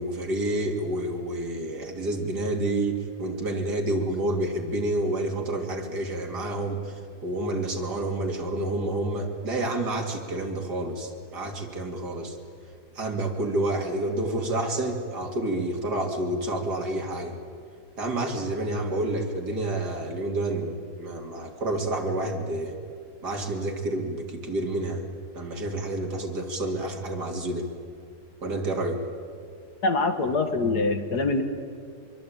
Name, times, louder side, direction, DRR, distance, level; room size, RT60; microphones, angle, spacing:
voice 1, 0.0-6.9 7.2-12.4 12.9-17.4 18.0-22.8 23.2-25.0 25.3-27.7 28.4-29.0, right 1 dB, 65° right, 3 dB, 3.4 m, -29 dB
voice 2, 29.8-31.4, left 3 dB, 65° left, 7 dB, 2.3 m, -24 dB
25.0 x 23.0 x 8.9 m, 2.2 s
omnidirectional pair, 1.9 m